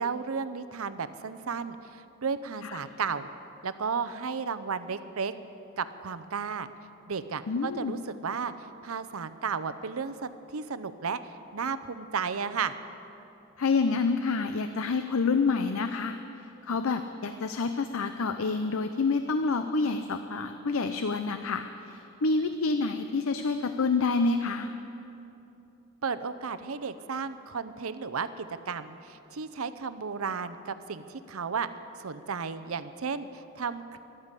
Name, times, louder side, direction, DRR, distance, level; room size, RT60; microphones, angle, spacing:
voice 1, 0.0-3.3 3.6-5.3 5.8-6.7 7.1-12.8 26.0-31.7 32.0-34.0, right 5 dB, 75° right, 12 dB, 0.7 m, -34 dB
voice 2, 7.5-7.9 13.6-16.2 16.6-24.7, left 4 dB, 75° left, 9 dB, 0.6 m, -28 dB
14.5 x 12.0 x 8.2 m, 2.8 s
head